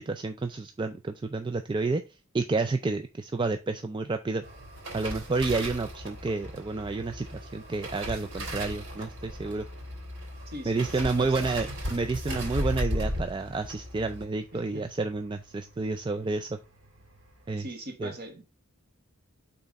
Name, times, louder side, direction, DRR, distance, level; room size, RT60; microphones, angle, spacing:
voice 1, 0.0-2.0 2.3-4.4 4.9-9.7 10.7-16.6 17.5-17.6 18.0-18.1, right 3 dB, 20° right, 0.3 m, -30 dB
sound 1, 4.4-15.8 16.1-16.4 16.7-17.2 17.5-17.6, equal, 65° right, 3.3 m, -36 dB
voice 2, 10.5-11.5 14.5-14.8 17.6-18.4, right 1 dB, 45° right, 1.7 m, -41 dB
5.7 x 4.0 x 5.2 m
head